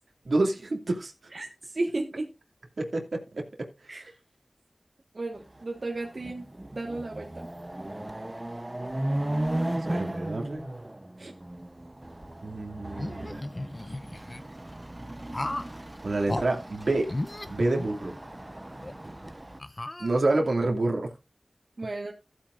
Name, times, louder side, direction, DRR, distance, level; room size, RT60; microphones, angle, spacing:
voice 1, 0.2-1.1 2.8-3.7 9.1-9.2 9.6-10.7 12.4-13.3 16.0-17.1 17.5-18.1 20.0-21.1, right 2 dB, 85° right, 2.4 m, -28 dB
voice 2, 1.3-2.3 3.9-4.0 5.1-6.4 6.7-7.5 11.2-11.3 21.8-22.1, right 2 dB, 65° right, 1.5 m, -34 dB
Chatter / Car passing by / Motorcycle, 5.6-5.7 6.0-19.6, right 1 dB, 30° right, 0.8 m, -36 dB
sound 1, 12.9-14.4 15.3-15.8 16.3-16.5 17.1-18.3 18.8-18.9 19.6-20.5, left 1 dB, 40° left, 0.7 m, -35 dB
14.5 x 8.9 x 2.6 m
wide cardioid pair, 40°, 0 cm